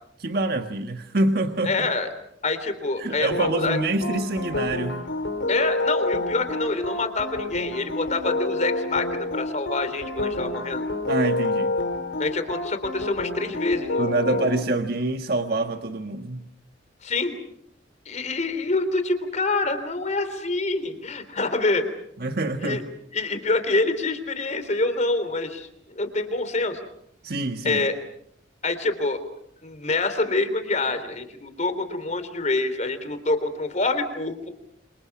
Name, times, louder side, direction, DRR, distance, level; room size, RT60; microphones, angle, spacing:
voice 1, 0.2-1.7 3.0-5.1 11.1-11.7 14.0-16.4 22.2-22.8 27.2-27.8, right 2 dB, 60° right, 6 dB, 1.4 m, -26 dB
voice 2, 1.6-2.1 2.4-3.8 5.5-10.8 12.2-14.4 17.0-17.3 18.1-21.9 22.6-22.8 23.1-26.8 27.6-27.9 28.6-29.2 29.6-34.5, left 3 dB, 40° left, 10 dB, 3.5 m, -26 dB
sound 1, 3.3-14.6, left 2 dB, 90° left, 5.0 m, -28 dB
28.0 x 27.5 x 6.0 m, 0.72 s
head